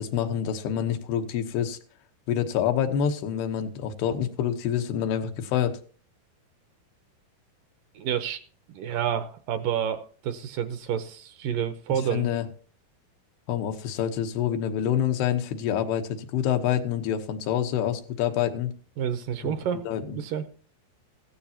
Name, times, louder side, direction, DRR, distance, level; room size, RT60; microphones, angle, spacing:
voice 1, 0.0-1.8 2.3-5.8 11.9-12.5 13.5-18.7 19.4-19.5 19.8-20.2, left 9 dB, 90° left, 6 dB, 3.3 m, -27 dB
voice 2, 7.9-8.4 8.7-12.3 19.0-19.8 20.1-20.5, right 9 dB, 75° right, 10 dB, 2.2 m, -29 dB
16.0 x 14.0 x 2.9 m, 0.43 s
omnidirectional pair, 4.5 m